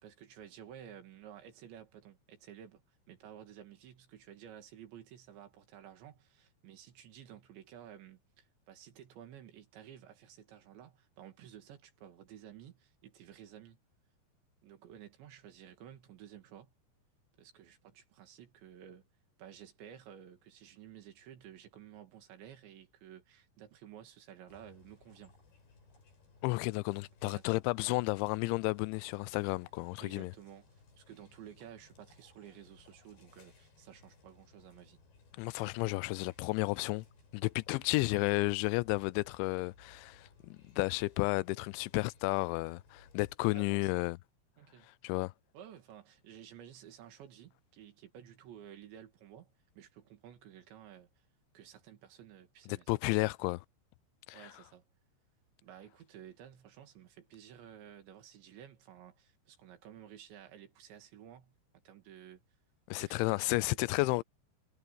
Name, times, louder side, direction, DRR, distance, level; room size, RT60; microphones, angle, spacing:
voice 1, 0.0-2.8 3.1-13.8 14.6-16.7 17.4-19.0 19.4-25.3 27.2-27.5 30.0-35.0 37.7-38.0 43.5-44.0 44.6-44.9 45.5-51.2 51.5-52.9 54.3-54.8 55.6-61.6 61.9-62.4 63.0-64.0, right 10 dB, 75° right, 4.5 m, -53 dB
sound 1, 24.5-43.3, left 4 dB, 60° left, 8.0 m, -62 dB
voice 2, 26.4-30.3 35.4-37.1 37.3-44.2 45.0-45.3 52.7-53.6 54.3-54.5 62.9-64.2, left 23 dB, 90° left, 2.9 m, -32 dB
omnidirectional pair, 5.2 m